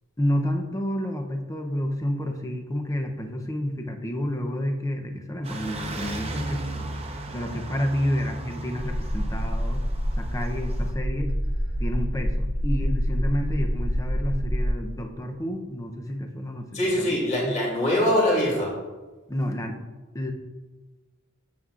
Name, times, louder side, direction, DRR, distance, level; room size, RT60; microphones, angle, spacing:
voice 1, 0.2-6.8 7.3-9.8 10.2-11.3 11.8-16.7 17.0-17.6 19.3-19.8 20.1-20.3, equal, 15° left, 4 dB, 0.6 m, -30 dB
sound 1, 5.4-10.9, right 2 dB, 30° right, 0.9 m, -36 dB
sound 2, 8.8-14.7, equal, 10° right, 1.1 m, -26 dB
voice 2, 16.7-18.7, left 1 dB, 35° left, -4 dB, 2.7 m, -23 dB
9.4 x 7.9 x 2.4 m, 1.2 s
head